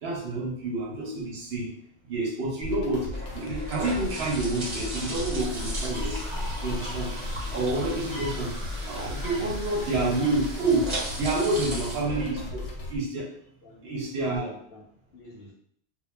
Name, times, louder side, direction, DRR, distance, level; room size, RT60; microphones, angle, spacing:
voice 1, 0.0-1.7 2.1-3.1 3.3-6.3 6.6-7.1 7.5-8.5 8.8-10.9 11.2-13.3 13.8-14.5, right 2 dB, 70° right, -1 dB, 0.8 m, -28 dB
sound 1, 2.6-12.9, left 3 dB, 90° left, 0.9 m, -38 dB
sound 2, 2.6-13.0, right 1 dB, 35° right, 0.6 m, -36 dB
sound 3, 5.4-12.0, equal, 10° left, 0.3 m, -46 dB
voice 2, 13.6-14.8 15.1-15.5, left 1 dB, 60° left, -2 dB, 0.7 m, -47 dB
2.2 x 2.1 x 3.1 m, 0.65 s
omnidirectional pair, 1.2 m